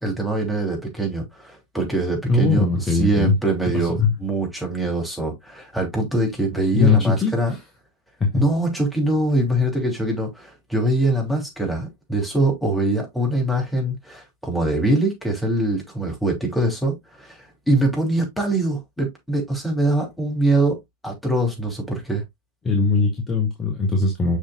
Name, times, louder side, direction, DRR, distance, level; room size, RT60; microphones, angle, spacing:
voice 1, 0.0-7.5 8.3-22.2, right 2 dB, 5° left, 3.1 m, -23 dB
voice 2, 2.3-3.3 3.7-4.1 6.7-7.6 8.2-8.4 22.6-24.4, left 4 dB, 20° left, 1.6 m, -20 dB
6.6 x 6.2 x 2.3 m
figure-of-eight pair, 90°, 0 cm